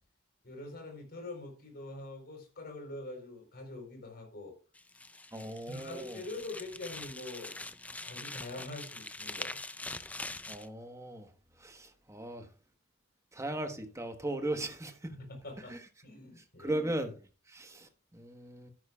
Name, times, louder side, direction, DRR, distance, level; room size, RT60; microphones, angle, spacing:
voice 1, 0.4-4.5 5.7-7.5 8.0-9.6 15.1-16.8, left 2 dB, 50° left, 3.9 m, -44 dB
sound 1, 4.7-10.7, left 2 dB, 5° left, 0.4 m, -43 dB
voice 2, 5.3-6.2 10.5-11.3 11.6-12.5 13.3-15.2 15.7-15.8 16.6-17.1 17.5-18.7, right 1 dB, 15° right, 1.2 m, -37 dB
13.0 x 10.5 x 2.4 m
head